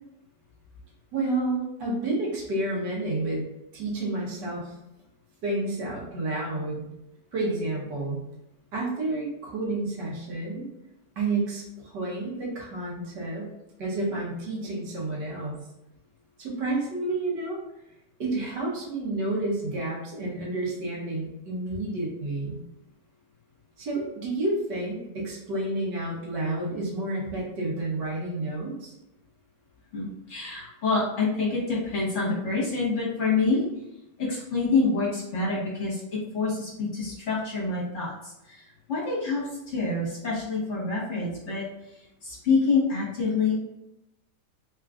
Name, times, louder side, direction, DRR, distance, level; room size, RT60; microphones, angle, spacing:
voice 1, 1.1-3.4 3.7-4.7 5.4-6.9 7.3-8.2 8.7-10.7 11.2-13.5 13.8-15.6 16.4-17.6 18.2-22.6 23.8-28.9, right 2 dB, 75° right, -4 dB, 1.7 m, -30 dB
voice 2, 29.9-33.6 34.2-36.0 36.3-43.6, left 4 dB, 50° left, -6 dB, 1.3 m, -27 dB
3.7 x 2.4 x 3.5 m, 0.87 s
omnidirectional pair, 1.8 m